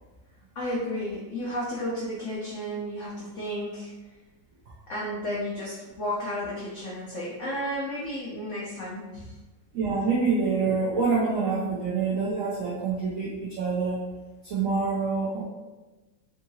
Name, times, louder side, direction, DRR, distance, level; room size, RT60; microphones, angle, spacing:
voice 1, 0.5-3.9 4.9-9.3 11.4-11.7, equal, 75° left, -6 dB, 0.7 m, -33 dB
voice 2, 9.7-14.0 14.4-15.4, right 4 dB, 75° right, -5 dB, 0.7 m, -26 dB
3.6 x 2.8 x 2.7 m, 1.2 s
omnidirectional pair, 2.1 m